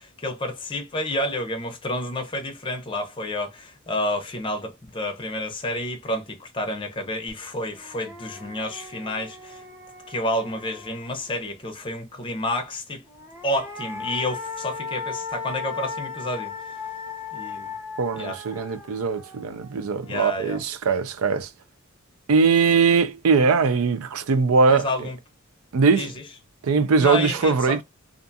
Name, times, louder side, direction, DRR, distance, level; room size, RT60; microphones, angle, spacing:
voice 1, 0.0-9.6 10.1-13.0 13.4-16.5 17.3-17.7 18.1-18.4 20.0-20.6 24.7-25.2 25.9-26.1 27.0-27.8, left 1 dB, 25° left, 0.6 m, -29 dB
sound 1, 7.3-7.4 7.7-11.4 13.0-20.3, left 4 dB, 10° right, 0.7 m, -37 dB
voice 2, 18.0-21.5 22.3-24.9 25.7-26.1 26.6-27.8, right 4 dB, 85° right, 0.5 m, -21 dB
2.5 x 2.3 x 2.6 m
head